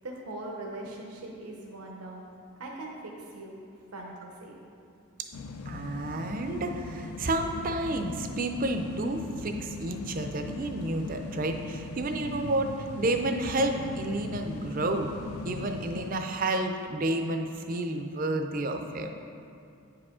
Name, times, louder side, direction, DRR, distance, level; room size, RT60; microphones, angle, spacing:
voice 1, 0.0-2.3 2.6-3.6 3.9-4.6, right 2 dB, 85° right, -1 dB, 0.8 m, -41 dB
sound 1, 5.3-16.1, left 3 dB, 85° left, 0.4 m, -40 dB
voice 2, 5.7-15.1 15.4-19.1, right 2 dB, 40° right, 5 dB, 0.4 m, -30 dB
9.2 x 4.9 x 3.7 m, 2.5 s
head